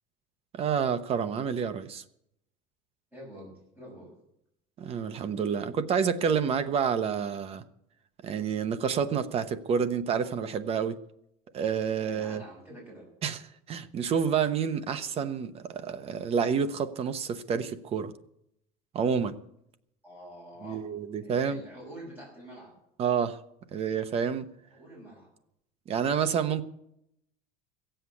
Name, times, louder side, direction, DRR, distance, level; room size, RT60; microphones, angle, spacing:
voice 1, 0.5-2.0 4.8-7.6 8.2-11.0 11.5-12.4 13.2-13.4 13.7-18.1 18.9-19.4 20.6-21.6 23.0-23.4 23.7-24.5 25.9-26.6, right 7 dB, 30° right, 0.8 m, -29 dB
voice 2, 3.1-4.1 12.0-13.0 20.0-20.8 21.2-22.7 24.7-25.3, equal, 10° right, 6.4 m, -47 dB
16.0 x 7.9 x 8.3 m
cardioid pair, 170°, 20 cm